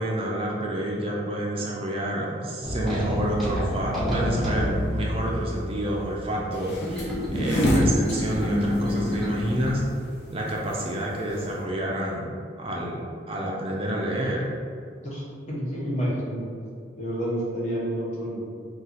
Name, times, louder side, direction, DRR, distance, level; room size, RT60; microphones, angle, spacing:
voice 1, 0.0-9.8 10.3-12.3 12.6-14.5, right 1 dB, 30° right, -3 dB, 0.4 m, -29 dB
sound 1, 2.6-9.7, left 1 dB, ahead, 0.7 m, -29 dB
sound 2, 6.5-11.6, equal, 65° left, 0.8 m, -27 dB
voice 2, 15.0-16.5 16.9-18.4, equal, 40° left, -6 dB, 1.0 m, -29 dB
4.2 x 2.4 x 3.9 m, 2.3 s
head